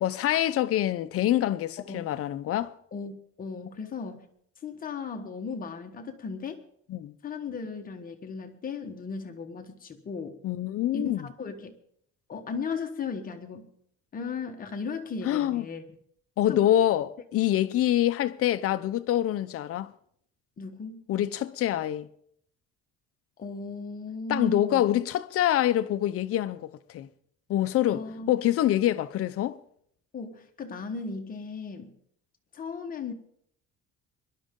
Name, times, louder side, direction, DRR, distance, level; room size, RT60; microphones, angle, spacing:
voice 1, 0.0-2.7 6.9-7.1 10.4-11.3 15.2-15.6 16.4-19.9 21.1-22.1 24.3-27.1 27.5-29.6, left 12 dB, 50° left, 0.7 m, -26 dB
voice 2, 2.9-4.3 4.6-6.6 7.2-10.4 10.9-11.7 12.3-13.7 14.1-15.8 16.5-16.7 20.6-21.0 23.4-24.9 27.9-28.3 30.1-31.9 32.5-33.1, left 4 dB, 30° left, 1.3 m, -36 dB
21.0 x 11.5 x 3.7 m
cardioid pair, 175°, 30 cm